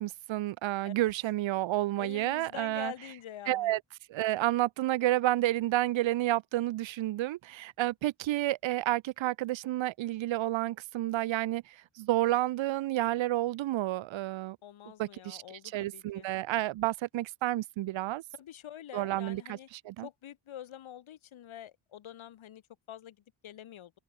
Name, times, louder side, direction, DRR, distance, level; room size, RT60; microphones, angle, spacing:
voice 1, 0.0-2.9 3.5-3.8 4.1-14.6 15.0-15.4 15.7-18.2 18.9-19.6 19.8-20.1, right 15 dB, 70° right, 0.8 m, -30 dB
voice 2, 2.0-3.7 14.6-16.3 18.3-19.7 20.0-22.6 22.9-23.2 23.4-23.9, left 11 dB, 75° left, 5.4 m, -46 dB
cardioid pair, 70°, 48 cm